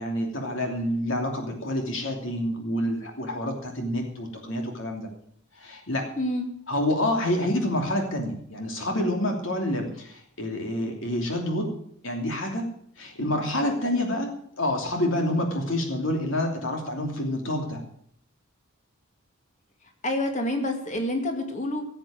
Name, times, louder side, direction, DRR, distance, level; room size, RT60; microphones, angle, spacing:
voice 1, 0.0-5.1 5.6-6.0 6.7-11.7 12.0-12.6 13.0-17.8, left 1 dB, 65° left, 3 dB, 2.9 m, -28 dB
voice 2, 6.2-6.5 20.0-21.8, left 1 dB, 35° left, 4 dB, 2.3 m, -27 dB
16.5 x 8.1 x 7.6 m, 0.65 s
head